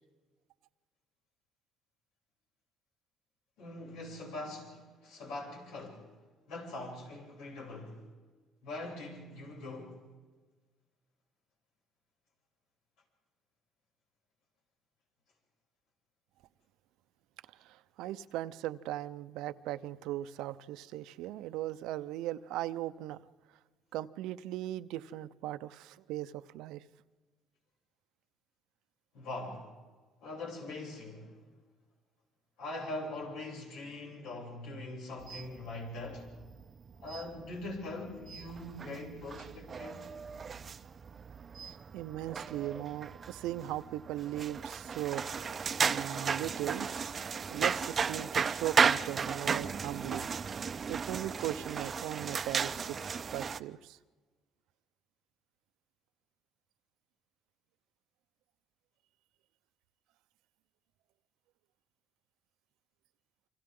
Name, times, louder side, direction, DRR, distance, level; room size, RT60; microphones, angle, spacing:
voice 1, 3.6-6.1 6.5-8.0 8.6-10.0 29.1-29.7 30.2-31.4 32.6-36.3 37.0-40.0, left 2 dB, 85° left, 7.7 m, -42 dB
voice 2, 17.5-23.2 23.9-26.8 41.6-45.6 45.9-47.1 47.5-50.3 50.9-53.0 53.3-54.0, right 14 dB, 90° right, 0.7 m, -38 dB
sound 1, 35.2-53.6, right 6 dB, 30° right, 0.6 m, -35 dB
29.5 x 25.5 x 3.8 m
cardioid pair, 145°, 0 cm